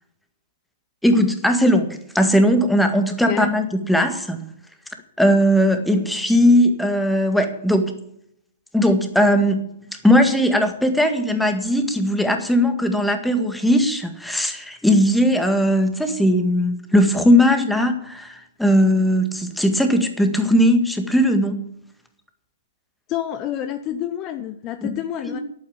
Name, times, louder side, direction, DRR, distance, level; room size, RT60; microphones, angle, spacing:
voice 1, 1.0-4.4 5.2-7.9 8.7-9.7 10.0-21.7 24.8-25.0 25.3-25.4, equal, ahead, 6 dB, 1.8 m, -18 dB
voice 2, 23.1-25.4, left 11 dB, 30° left, 9 dB, 1.0 m, -28 dB
11.5 x 9.1 x 8.7 m, 0.72 s
figure-of-eight pair, 120°, 0 cm